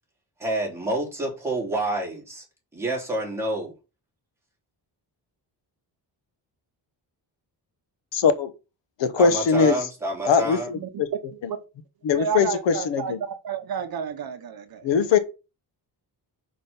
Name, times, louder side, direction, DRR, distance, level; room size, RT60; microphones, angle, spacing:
voice 1, 0.4-2.4 2.7-3.7 9.1-10.7, right 2 dB, 5° right, 3.2 m, -28 dB
voice 2, 8.1-8.5 9.0-9.9 10.2-11.1 11.4-11.5 12.0-13.2 14.8-15.2, left 6 dB, 80° left, 1.0 m, -21 dB
voice 3, 10.7-11.6 12.1-15.1, right 7 dB, 55° right, 0.9 m, -31 dB
5.8 x 5.2 x 5.4 m
wide cardioid pair, 165°, 43 cm